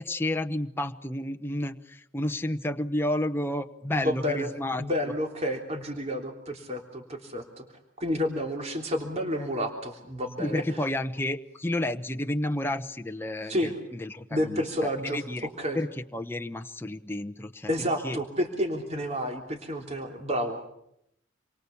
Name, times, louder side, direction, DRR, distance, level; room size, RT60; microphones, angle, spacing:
voice 1, 0.0-4.8 10.4-15.5 15.7-17.7 18.0-18.2, left 1 dB, 10° left, 6 dB, 1.0 m, -31 dB
voice 2, 3.9-4.5 4.8-7.6 8.0-10.6 13.5-13.7 14.3-15.2 15.6-15.8 17.7-20.7, equal, 35° right, 3 dB, 3.3 m, -30 dB
28.0 x 23.5 x 7.1 m, 0.77 s
head